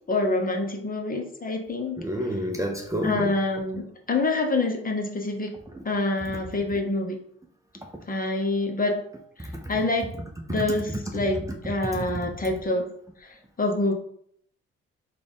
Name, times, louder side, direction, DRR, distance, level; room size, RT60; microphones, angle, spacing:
voice 1, 0.1-2.0 3.0-5.5 5.8-7.2 8.1-9.0 9.4-10.2 10.5-12.9 13.2-13.9, left 2 dB, 30° left, 3 dB, 0.8 m, -26 dB
voice 2, 2.0-3.4 5.7-5.8 6.3-6.4 9.4-9.7 10.6-10.7 11.6-12.3, equal, 10° right, 2 dB, 0.6 m, -30 dB
3.3 x 2.4 x 4.0 m, 0.66 s
supercardioid pair, 55°, 29 cm